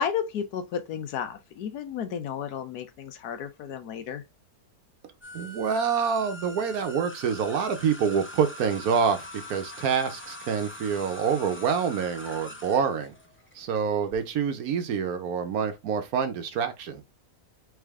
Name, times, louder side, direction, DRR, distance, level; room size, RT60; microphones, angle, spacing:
voice 1, 0.0-4.2, left 7 dB, 85° left, 1.4 m, -32 dB
sound 1, 5.2-14.2, left 1 dB, 20° left, 0.4 m, -43 dB
voice 2, 5.3-13.1 13.5-17.0, right 6 dB, 75° right, 1.3 m, -27 dB
3.6 x 3.5 x 3.5 m
omnidirectional pair, 1.6 m